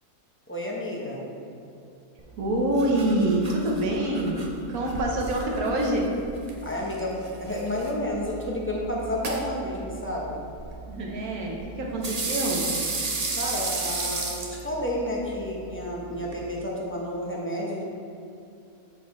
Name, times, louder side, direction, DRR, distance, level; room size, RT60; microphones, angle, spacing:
voice 1, 0.5-1.2 6.6-10.4 13.4-17.8, left 1 dB, 10° left, -4 dB, 0.8 m, -31 dB
sound 1, 2.2-16.4, right 3 dB, 40° right, 0.6 m, -35 dB
voice 2, 2.4-6.1 10.9-12.8, right 1 dB, 70° right, -1 dB, 1.5 m, -26 dB
8.4 x 4.7 x 4.0 m, 2.6 s
omnidirectional pair, 1.6 m